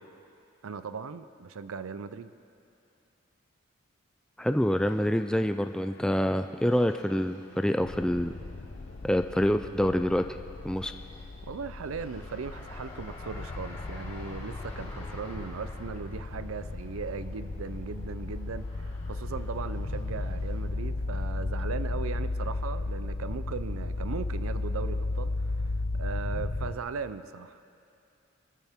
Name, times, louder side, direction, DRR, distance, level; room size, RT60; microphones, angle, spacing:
voice 1, 0.6-2.3 11.5-27.6, right 5 dB, 90° right, 13 dB, 0.5 m, -38 dB
sound 1, 4.4-20.6, left 2 dB, 30° left, 3.0 m, -51 dB
voice 2, 4.4-8.3 9.0-10.2 10.6-10.9, equal, 5° left, 7 dB, 0.3 m, -26 dB
sound 2, 7.8-26.7, left 2 dB, 50° left, 0.7 m, -35 dB
25.0 x 14.0 x 3.6 m, 2.6 s
head